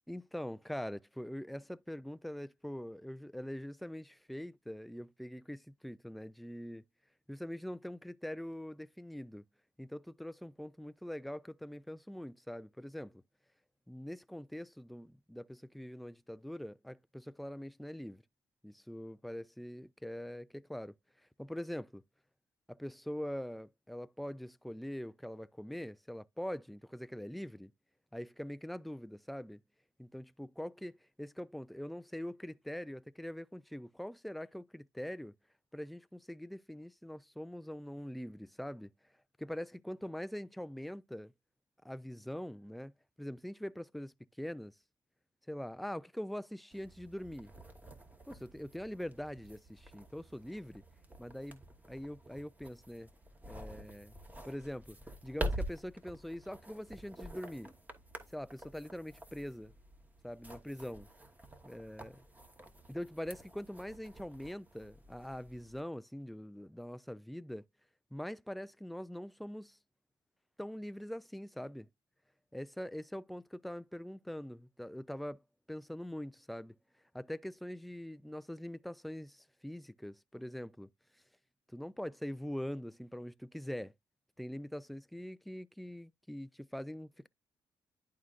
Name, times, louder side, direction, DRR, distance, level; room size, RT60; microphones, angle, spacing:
voice 1, 0.1-6.8 7.3-9.4 9.8-13.2 13.9-18.2 18.6-20.9 21.4-22.0 22.7-27.7 28.1-29.6 30.0-35.3 35.7-38.9 39.4-41.3 41.8-42.9 43.2-44.7 45.5-47.5 48.3-50.8 51.2-53.1 53.5-54.1 54.4-55.0 55.2-57.7 58.3-59.7 60.2-61.1 61.6-62.2 62.9-67.6 68.1-69.8 70.6-71.9 72.5-75.4 75.7-76.8 77.1-80.9 81.7-83.9 84.4-87.3, equal, ahead, 0.3 m, -43 dB
sound 1, 46.7-65.8, equal, 20° right, 1.2 m, -47 dB
11.0 x 3.7 x 2.5 m
cardioid pair, 70°, 9 cm